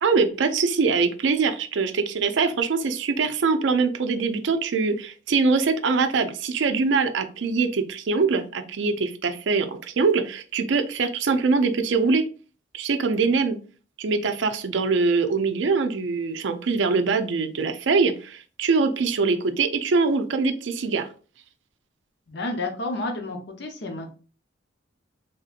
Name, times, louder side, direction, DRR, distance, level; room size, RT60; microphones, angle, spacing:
voice 1, 0.0-12.2 12.7-13.6 14.0-21.1, right 4 dB, 70° right, 9 dB, 0.4 m, -23 dB
voice 2, 22.3-24.1, left 2 dB, 65° left, 4 dB, 0.7 m, -31 dB
3.5 x 2.7 x 2.4 m, 0.38 s
head